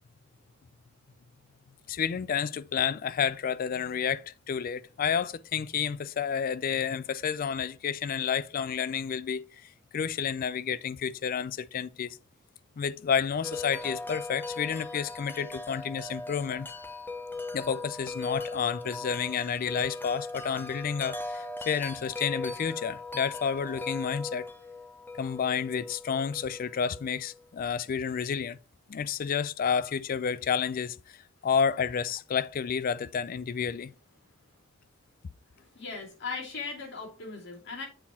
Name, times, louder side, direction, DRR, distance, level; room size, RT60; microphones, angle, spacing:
voice 1, 1.9-9.5 9.9-12.2 12.8-16.7 17.5-24.5 25.2-28.6 28.9-31.0 31.4-33.9, left 7 dB, 45° left, 0.3 m, -30 dB
Wind chime, 13.4-27.4, left 2 dB, 10° left, 0.8 m, -39 dB
voice 2, 35.6-37.9, left 4 dB, 60° left, 2.8 m, -38 dB
7.8 x 4.3 x 4.3 m
head